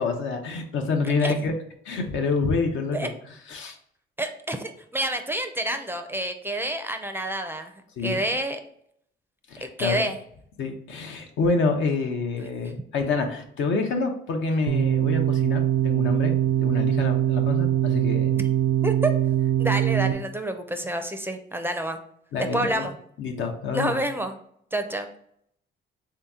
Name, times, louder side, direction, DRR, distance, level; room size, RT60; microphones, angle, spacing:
voice 1, 0.0-1.5 1.8-3.8 8.0-8.2 9.5-10.0 10.6-18.4 22.3-22.8 23.2-24.0, left 4 dB, 75° left, 4 dB, 0.7 m, -27 dB
voice 2, 4.2-8.6 9.8-10.2 18.3-18.4 18.8-19.1 19.6-22.0 22.5-22.9 23.7-24.4 24.7-25.1, right 1 dB, 10° right, 7 dB, 0.4 m, -28 dB
sound 1, 14.7-20.1, right 11 dB, 85° right, 0.4 m, -22 dB
3.5 x 2.8 x 3.5 m, 0.69 s
cardioid pair, 90°, 20 cm